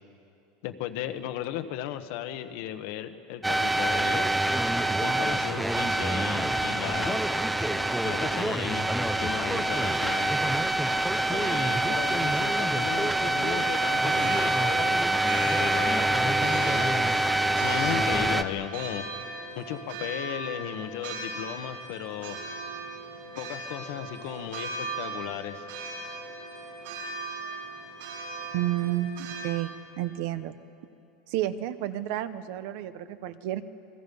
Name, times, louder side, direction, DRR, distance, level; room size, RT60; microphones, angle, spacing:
voice 1, 0.6-4.3 5.0-7.2 8.0-8.9 9.2-10.3 11.3-15.0 15.6-17.3 17.6-19.0 19.5-22.4 23.3-25.7, left 11 dB, 55° left, 8 dB, 1.3 m, -35 dB
sound 1, 3.4-18.4, right 1 dB, 5° right, 0.6 m, -25 dB
sound 2, 13.4-29.5, right 3 dB, 70° right, 7.9 m, -39 dB
voice 2, 28.5-29.7 30.0-30.6 31.3-33.6, right 13 dB, 55° right, 12 dB, 0.9 m, -30 dB
29.5 x 22.0 x 5.5 m, 2.6 s
supercardioid pair, 175°, 0 cm